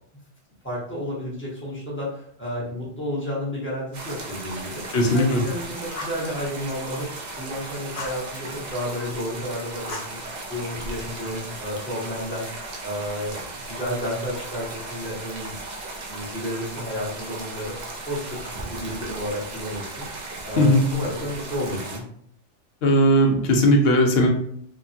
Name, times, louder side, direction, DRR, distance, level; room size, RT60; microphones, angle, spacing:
voice 1, 0.6-4.8 5.1-7.1 7.4-10.2 10.5-12.5 12.8-15.5 16.1-17.8 18.1-18.4 18.7-20.0 20.4-22.1, equal, 10° left, -7 dB, 0.9 m, -31 dB
sound 1, 3.9-22.0, right 2 dB, 55° right, 0.5 m, -36 dB
voice 2, 4.9-5.4 20.6-20.8 22.8-24.3, equal, 65° left, 1 dB, 0.8 m, -18 dB
Fire, 5.9-6.3 7.9-8.2 9.9-10.8, left 3 dB, 85° left, 1.1 m, -37 dB
2.9 x 2.2 x 2.6 m, 0.64 s
omnidirectional pair, 1.2 m